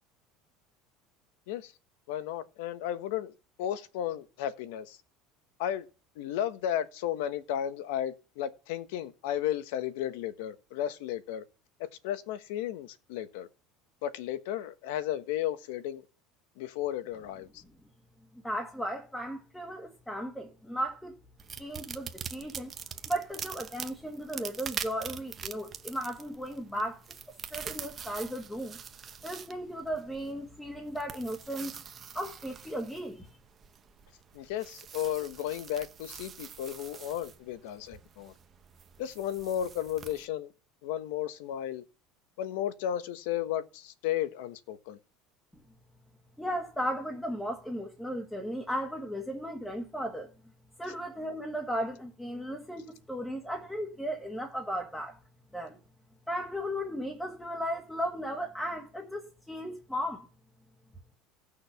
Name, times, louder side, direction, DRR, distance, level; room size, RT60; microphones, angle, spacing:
voice 1, 2.1-3.3 3.6-5.0 5.6-5.9 6.2-11.4 12.0-13.5 14.0-16.0 16.6-17.5 34.3-38.3 39.0-40.5 40.8-41.8 42.4-45.0, left 11 dB, 80° left, 1.2 m, -34 dB
voice 2, 18.4-21.2 21.5-22.7 23.1-27.2 27.5-28.8 29.2-31.8 32.1-33.3 46.4-50.3 50.8-55.2 55.5-55.8 56.3-60.3, equal, 5° left, 1.4 m, -35 dB
sound 1, 21.4-40.3, right 7 dB, 25° right, 0.9 m, -44 dB
17.0 x 6.5 x 5.8 m
cardioid pair, 165°, 0 cm